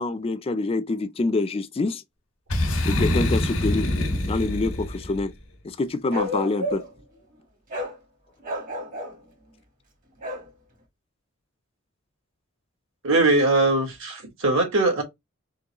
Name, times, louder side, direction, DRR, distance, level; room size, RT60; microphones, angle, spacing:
voice 1, 0.0-2.0 2.8-3.9 4.2-5.3 5.6-6.8, left 3 dB, 30° left, 0.4 m, -26 dB
Boom, 2.5-5.2, left 1 dB, 80° left, 1.2 m, -25 dB
Bark, 6.1-7.0 7.7-8.0 8.4-9.2 10.2-10.5, left 1 dB, 40° right, 1.2 m, -31 dB
voice 2, 13.0-15.0, right 2 dB, 70° right, 1.6 m, -21 dB
3.8 x 3.2 x 2.8 m
head